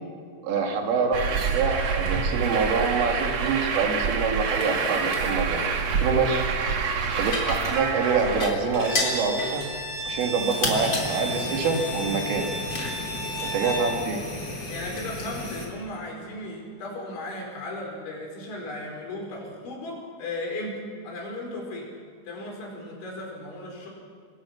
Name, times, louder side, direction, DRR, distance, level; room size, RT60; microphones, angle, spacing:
voice 1, 0.4-5.6 6.0-6.4 7.1-9.6 10.1-12.5 13.4-14.2, right 4 dB, 85° right, 2 dB, 5.1 m, -26 dB
Truck, 1.1-8.5, right 5 dB, 60° right, 1.8 m, -27 dB
sound 1, 2.0-15.7, left 2 dB, 25° left, 3.7 m, -35 dB
Bowed string instrument, 8.7-13.9, right 1 dB, 15° right, 6.8 m, -33 dB
voice 2, 14.7-20.8 21.0-21.9 22.3-23.9, left 1 dB, 70° left, 0 dB, 7.2 m, -36 dB
26.0 x 21.0 x 6.1 m, 2.2 s
omnidirectional pair, 5.6 m